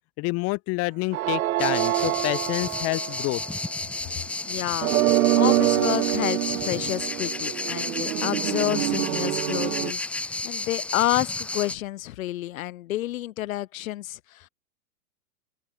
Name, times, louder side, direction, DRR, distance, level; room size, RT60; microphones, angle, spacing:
voice 1, 0.2-3.4, left 25 dB, 35° left, 0.8 m, -28 dB
sound 1, 1.1-3.6 4.8-9.9, right 15 dB, 70° right, 1.2 m, -25 dB
sound 2, 1.6-11.7, left 2 dB, 5° left, 0.4 m, -32 dB
voice 2, 4.5-14.5, left 15 dB, 65° left, 2.4 m, -30 dB
open air
hypercardioid pair, 125°, 44 cm